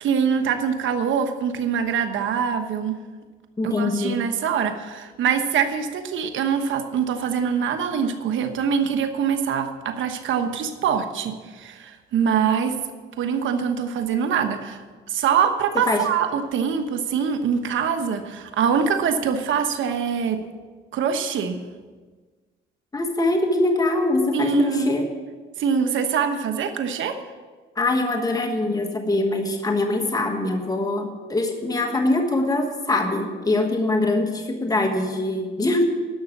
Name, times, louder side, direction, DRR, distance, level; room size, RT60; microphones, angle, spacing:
voice 1, 0.0-3.0 3.6-12.8 13.2-20.4 20.9-21.7 24.3-24.9 25.6-27.2, right 7 dB, 75° right, 7 dB, 1.2 m, -24 dB
voice 2, 3.6-4.2 15.7-16.1 22.9-25.1 27.7-35.8, left 2 dB, 20° left, 3 dB, 1.4 m, -23 dB
11.5 x 6.4 x 8.4 m, 1.4 s
cardioid pair, 90°, 20 cm